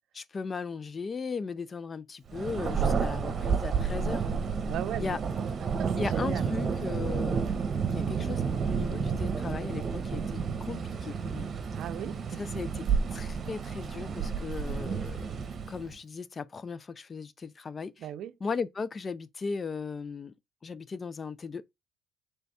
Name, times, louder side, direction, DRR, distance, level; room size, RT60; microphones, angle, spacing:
voice 1, 0.1-4.3 5.0-5.2 6.0-7.4 7.9-11.5 12.3-12.9 13.1-15.3 15.7-18.1 18.4-20.3 20.6-21.6, left 5 dB, 30° left, 0.4 m, -37 dB
Thunder, 2.3-15.9, right 5 dB, 40° right, 1.0 m, -31 dB
voice 2, 4.7-5.2 5.8-6.5 11.7-12.1 18.0-18.3, right 11 dB, 65° right, 0.5 m, -37 dB
3.4 x 3.3 x 4.1 m
cardioid pair, 95°, 0 cm